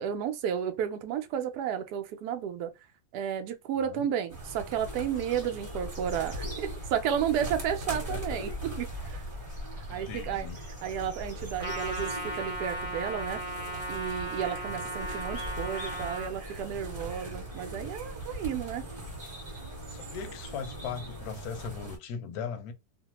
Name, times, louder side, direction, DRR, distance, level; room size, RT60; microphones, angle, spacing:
voice 1, 0.0-2.7 3.1-9.2 9.9-10.5 10.8-13.4 13.9-18.8, right 9 dB, 75° right, 1.1 m, -32 dB
sound 1, 4.3-22.0, equal, 25° right, 1.2 m, -39 dB
voice 2, 8.1-8.5 9.9-10.6 19.9-22.7, left 6 dB, 75° left, 1.0 m, -39 dB
Trumpet, 11.6-16.3, right 1 dB, 55° right, 0.3 m, -36 dB
2.8 x 2.2 x 2.9 m
omnidirectional pair, 1.8 m